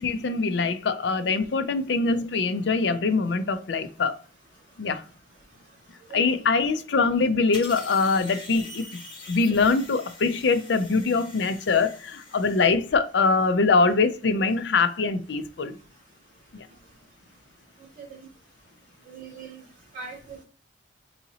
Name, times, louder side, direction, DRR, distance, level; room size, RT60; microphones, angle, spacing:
voice 1, 0.0-4.2 4.8-5.0 6.1-9.0 9.3-15.8 16.5-16.7, left 4 dB, 70° left, 0.5 m, -23 dB
sound 1, 7.5-12.7, left 2 dB, 25° left, 1.3 m, -44 dB
voice 2, 19.0-19.6 19.9-20.4, right 5 dB, 45° right, 2.3 m, -41 dB
4.2 x 3.8 x 2.7 m
head